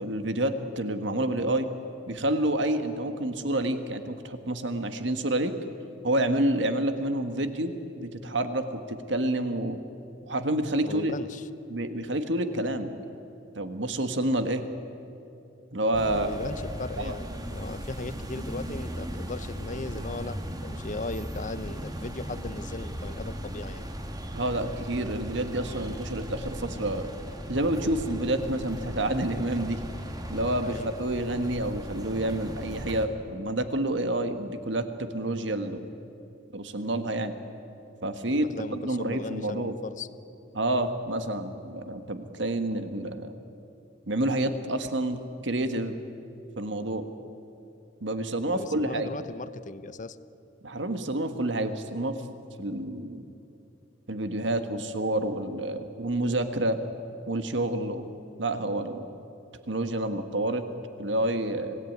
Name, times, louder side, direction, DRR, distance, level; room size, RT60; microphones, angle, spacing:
voice 1, 0.0-1.7 2.1-5.5 6.0-9.8 10.2-11.1 11.7-12.9 13.5-14.6 15.7-16.3 17.0-17.1 24.3-27.1 27.5-29.8 30.3-35.9 36.5-37.4 38.0-39.8 40.5-43.3 44.1-45.2 45.4-46.0 46.6-47.1 48.0-49.2 50.6-52.2 52.6-53.2 54.1-56.8 57.3-58.1 58.4-59.0 59.7-60.6 61.0-61.8, right 1 dB, 70° right, 8 dB, 1.7 m, -28 dB
voice 2, 10.8-11.5 16.0-23.9 30.6-30.9 38.3-40.1 48.5-50.2, left 3 dB, 45° left, 14 dB, 0.8 m, -38 dB
sound 1, 15.9-33.1, equal, 20° right, 1.7 m, -37 dB
25.5 x 17.5 x 9.4 m, 2.8 s
head